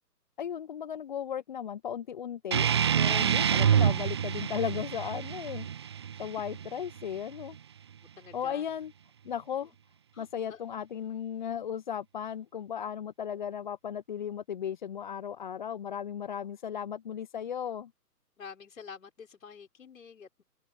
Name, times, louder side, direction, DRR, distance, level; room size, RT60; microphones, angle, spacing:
voice 1, 0.4-2.7 3.0-5.7 6.2-7.6 8.3-8.9 9.2-9.7 10.2-17.9, left 8 dB, 30° left, 0.9 m, -36 dB
sound 1, 2.5-7.6, right 8 dB, 15° right, 0.7 m, -27 dB
voice 2, 8.2-8.6 10.1-10.6 13.3-13.4 18.4-20.4, left 6 dB, 55° left, 6.5 m, -48 dB
figure-of-eight pair, 140°, 48 cm